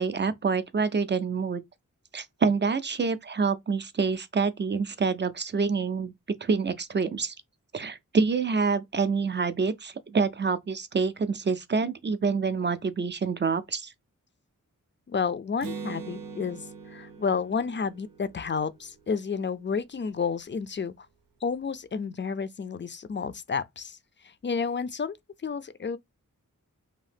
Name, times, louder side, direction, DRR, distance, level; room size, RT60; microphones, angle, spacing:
voice 1, 0.0-1.6 2.1-6.1 6.4-7.3 7.7-13.9, right 5 dB, 35° right, 0.4 m, -27 dB
voice 2, 15.1-21.1 21.4-24.0 24.2-25.2 25.4-26.0, left 5 dB, 35° left, 0.4 m, -31 dB
Acoustic guitar, 15.6-19.3, right 5 dB, 90° right, 0.6 m, -42 dB
2.7 x 2.0 x 3.3 m
wide cardioid pair, 70°, 33 cm